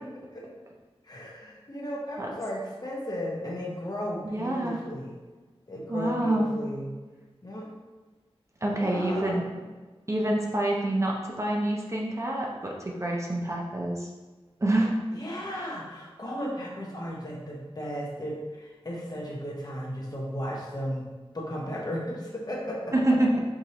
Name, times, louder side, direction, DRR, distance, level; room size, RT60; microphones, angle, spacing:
voice 1, 1.0-5.1 5.7-6.9 7.4-7.7 8.7-9.4 15.1-21.1 21.3-22.9, equal, 40° left, -3 dB, 1.0 m, -35 dB
voice 2, 4.2-4.8 5.9-6.5 8.6-9.4 10.1-14.1 14.6-15.0 15.5-15.7 22.9-23.4, right 1 dB, 30° right, -1 dB, 0.6 m, -27 dB
4.8 x 2.6 x 2.9 m, 1.3 s
wide cardioid pair, 55°, 10 cm